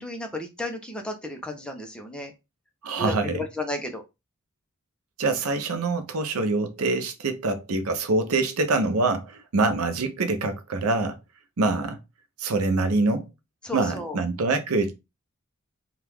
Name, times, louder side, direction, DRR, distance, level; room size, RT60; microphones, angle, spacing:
voice 1, 0.0-2.3 3.0-4.0 13.6-14.2, left 1 dB, 5° left, 0.6 m, -33 dB
voice 2, 2.8-3.4 5.2-11.2 11.6-12.0 12.4-13.3 13.7-14.9, right 3 dB, 90° right, 0.6 m, -25 dB
2.8 x 2.4 x 3.4 m
head